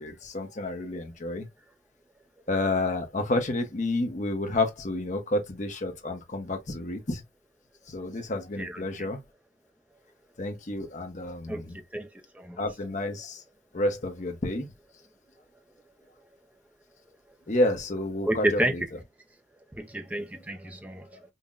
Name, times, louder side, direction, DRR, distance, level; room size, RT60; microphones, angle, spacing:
voice 1, 0.0-1.5 2.5-7.2 7.9-9.2 10.4-11.8 12.6-13.4 13.7-14.7 17.5-18.8 21.1-21.2, left 2 dB, 35° left, 0.7 m, -30 dB
voice 2, 11.5-12.1 12.3-12.6 18.3-18.7 19.7-21.2, right 1 dB, 5° right, 0.4 m, -30 dB
5.4 x 2.1 x 2.4 m
head